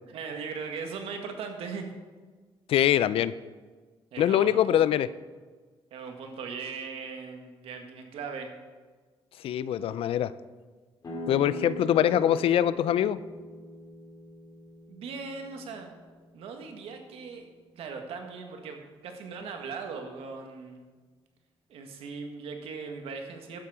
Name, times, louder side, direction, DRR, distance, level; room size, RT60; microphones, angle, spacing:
voice 1, 0.1-1.9 4.1-4.8 5.9-8.5 14.9-15.9 16.3-17.4 17.7-18.8 19.0-20.8 21.7-23.6, right 5 dB, 90° right, 4 dB, 1.6 m, -39 dB
voice 2, 2.7-3.3 4.2-5.1 9.4-10.3 11.3-13.2, left 11 dB, 75° left, 16 dB, 0.4 m, -23 dB
sound 1, 11.0-16.6, equal, 40° left, 3.9 m, -41 dB
11.5 x 8.6 x 4.9 m, 1.4 s
cardioid pair, 110°, 10 cm